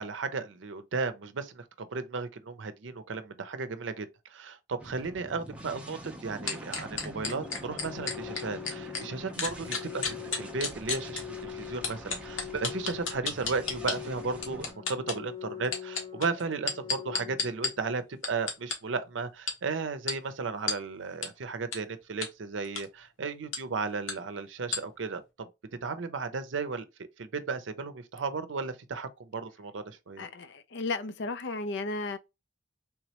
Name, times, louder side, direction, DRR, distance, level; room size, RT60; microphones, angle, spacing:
voice 1, 0.0-25.5 25.8-26.9 27.2-30.2, right 4 dB, 75° right, 0.6 m, -35 dB
sound 1, 4.8-14.7, equal, 5° right, 0.7 m, -45 dB
sound 2, 6.5-9.0 9.4-11.2 11.8-14.0 14.4-15.2 15.6-17.7 18.2-18.7 19.5-19.6 20.1-20.2 20.7-20.8 21.2-21.3 21.7-21.8 22.2-22.3 22.6-22.8 23.5-23.6 24.1-24.2 24.7-24.8, left 5 dB, 90° left, 1.2 m, -31 dB
Organ, 7.2-18.2, left 9 dB, 25° left, 1.5 m, -43 dB
voice 2, 30.2-32.2, left 3 dB, 65° left, 0.5 m, -34 dB
3.5 x 3.0 x 2.9 m
head